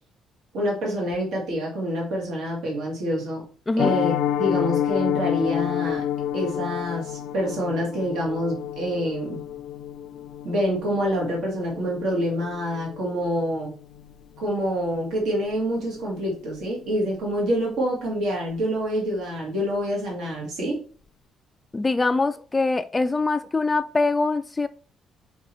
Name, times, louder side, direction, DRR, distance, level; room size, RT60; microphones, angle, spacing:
voice 1, 0.5-3.4 3.8-6.1 6.3-9.4 10.4-13.7 14.4-20.8, equal, 75° right, 2.1 m, -26 dB
voice 2, 3.7-4.0 21.7-24.7, left 3 dB, 15° left, 0.3 m, -23 dB
Piano, 3.8-14.7 14.9-15.2 15.5-15.6 16.0-16.2 16.5-16.6, left 11 dB, 75° left, 0.5 m, -30 dB
5.4 x 4.7 x 4.4 m
cardioid pair, 140°, 0 cm